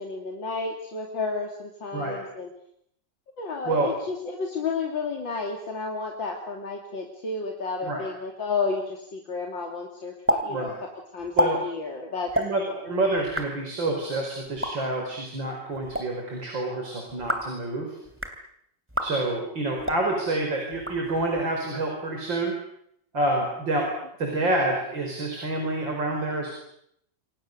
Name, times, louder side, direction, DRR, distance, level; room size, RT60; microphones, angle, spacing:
voice 1, 0.0-2.5 3.4-10.7 11.1-12.3 12.7-13.0, left 4 dB, 85° left, 1 dB, 3.6 m, -31 dB
sound 1, 10.3-10.4 10.7-10.8 11.2-11.5 12.3-12.5 13.2-13.5 14.5-14.7 15.7-16.0 17.1-17.5 18.1-18.4 18.9-19.1 19.8-20.0 20.7-21.4, equal, 5° right, 2.8 m, -28 dB
voice 2, 12.3-18.0 19.0-22.5 23.1-23.9 24.2-26.6, right 2 dB, 80° right, 2 dB, 5.7 m, -28 dB
28.5 x 25.5 x 6.8 m, 0.72 s
omnidirectional pair, 2.0 m